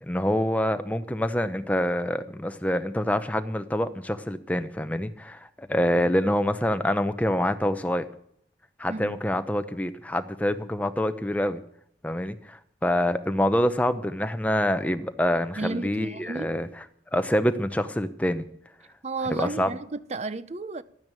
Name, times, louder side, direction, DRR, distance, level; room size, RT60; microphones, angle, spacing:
voice 1, 0.0-8.1 8.8-11.6 12.0-16.8 17.1-18.5 19.3-19.7, left 1 dB, 10° left, 0.8 m, -26 dB
voice 2, 15.6-16.5 19.0-20.8, right 3 dB, 40° right, 0.6 m, -33 dB
12.5 x 9.6 x 8.9 m
head